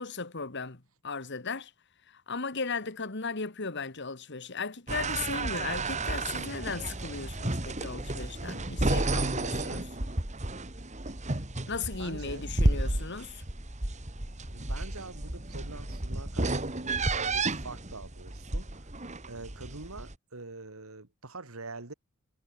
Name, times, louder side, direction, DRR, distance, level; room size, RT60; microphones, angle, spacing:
voice 1, 0.0-1.7 2.1-9.9 11.7-13.4, left 4 dB, 55° left, 1.9 m, -36 dB
sound 1, 4.9-20.1, right 2 dB, 35° right, 2.5 m, -32 dB
voice 2, 12.0-13.1 14.5-18.9 19.3-21.9, right 3 dB, 90° right, 2.5 m, -45 dB
head